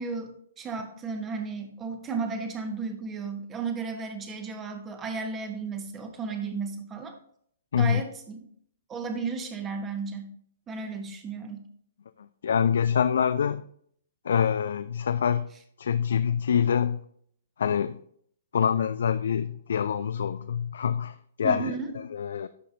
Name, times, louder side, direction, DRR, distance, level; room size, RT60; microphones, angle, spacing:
voice 1, 0.0-7.2 7.8-8.4 8.9-10.3 10.7-11.6 21.4-21.9, right 4 dB, 20° right, 6 dB, 1.2 m, -34 dB
voice 2, 12.4-13.6 14.2-15.5 15.8-17.0 17.6-18.0 18.5-22.5, left 7 dB, 60° left, 12 dB, 0.3 m, -25 dB
11.0 x 6.5 x 2.6 m, 0.64 s
figure-of-eight pair, 115°, 0 cm